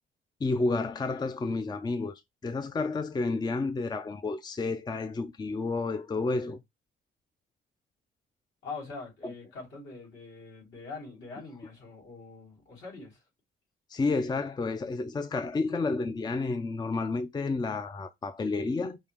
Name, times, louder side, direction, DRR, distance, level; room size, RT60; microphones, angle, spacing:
voice 1, 0.4-6.6 9.2-9.3 13.9-19.0, left 3 dB, 20° left, 0.5 m, -30 dB
voice 2, 8.6-13.2, left 4 dB, 70° left, 3.4 m, -43 dB
5.5 x 2.4 x 3.4 m
cardioid pair, 90°, 20 cm